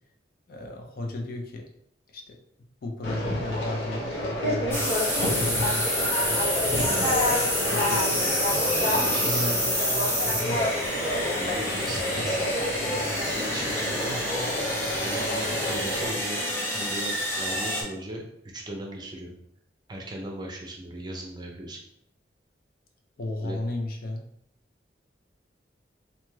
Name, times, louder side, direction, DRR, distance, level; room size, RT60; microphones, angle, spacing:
voice 1, 0.5-1.7 2.1-2.4 2.8-4.9 5.2-6.5 7.7-10.0 10.4-10.6 12.2-12.6 23.2-24.2, left 2 dB, 55° left, 2 dB, 0.5 m, -35 dB
Conversation, 3.0-16.1, left 1 dB, 80° left, 0.8 m, -29 dB
sound 1, 4.7-17.8, equal, 15° left, 0.7 m, -28 dB
voice 2, 6.8-7.2 8.8-9.5 11.3-12.4 13.1-14.5 15.0-16.4 16.7-19.3 19.9-21.8 23.4-23.6, right 1 dB, 25° right, 0 dB, 0.5 m, -37 dB
2.7 x 2.3 x 3.1 m, 0.71 s
head